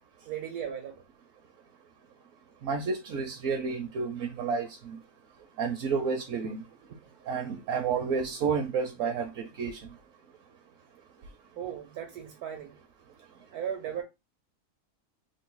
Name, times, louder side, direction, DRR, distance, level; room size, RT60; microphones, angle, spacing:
voice 1, 0.2-1.0 11.6-12.8 13.5-14.0, right 9 dB, 85° right, 1.3 m, -36 dB
voice 2, 2.6-5.0 5.6-6.6 7.3-9.9, right 5 dB, 65° right, 1.0 m, -30 dB
3.0 x 2.6 x 3.8 m
omnidirectional pair, 1.6 m